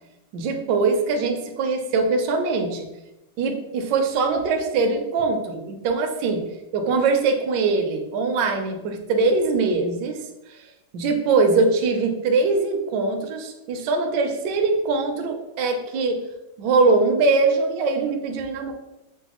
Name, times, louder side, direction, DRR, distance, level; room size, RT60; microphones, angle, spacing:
voice 1, 0.3-2.9 3.4-6.4 6.7-10.2 10.9-16.2 16.6-18.7, right 3 dB, 70° right, 4 dB, 1.0 m, -22 dB
6.1 x 2.1 x 2.9 m, 0.94 s
omnidirectional pair, 2.3 m